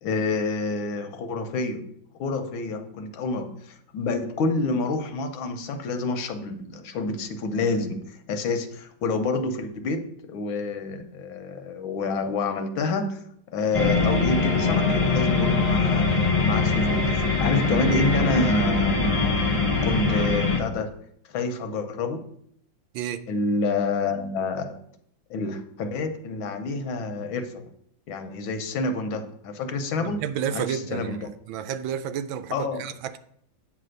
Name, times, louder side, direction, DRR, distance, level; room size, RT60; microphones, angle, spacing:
voice 1, 0.0-1.8 2.2-13.2 13.5-19.1 19.8-20.9 21.3-22.2 23.3-24.8 25.3-27.6 28.1-30.2 30.5-31.3 32.5-32.8, left 3 dB, 90° left, 1.6 m, -28 dB
sound 1, 13.7-20.6, left 3 dB, 35° left, 0.5 m, -22 dB
voice 2, 30.0-33.2, right 9 dB, 85° right, 1.3 m, -31 dB
8.7 x 3.4 x 6.4 m
omnidirectional pair, 2.1 m